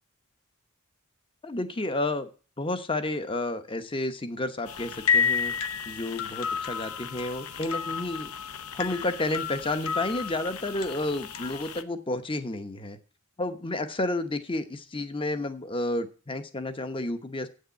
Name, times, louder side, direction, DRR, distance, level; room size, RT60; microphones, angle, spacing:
voice 1, 1.4-2.3 2.6-5.5 5.9-8.3 8.7-13.0 13.4-17.5, left 2 dB, 25° left, 10 dB, 0.9 m, -31 dB
sound 1, 4.7-11.8, left 6 dB, 85° left, 0.8 m, -31 dB
8.6 x 6.6 x 8.4 m, 0.37 s
head